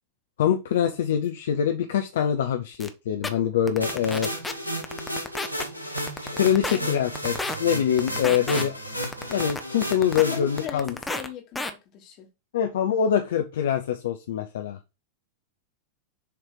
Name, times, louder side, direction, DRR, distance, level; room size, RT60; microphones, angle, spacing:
voice 1, 0.4-4.3 6.4-7.3 7.6-8.8 9.3-10.9 12.5-14.8, left 9 dB, 60° left, 0.6 m, -24 dB
sound 1, 2.8-2.9 3.2-3.3 3.7-4.5 4.8-5.6 6.0-6.8 7.1-7.6 8.0-8.6 9.0-10.2 10.6-11.3 11.5-11.7, left 2 dB, 10° left, 0.9 m, -30 dB
sound 2, 3.8-10.6, equal, 85° right, 1.3 m, -33 dB
voice 2, 10.3-12.3, left 9 dB, 40° left, 1.5 m, -39 dB
6.7 x 3.2 x 4.8 m
figure-of-eight pair, 90°, 0 cm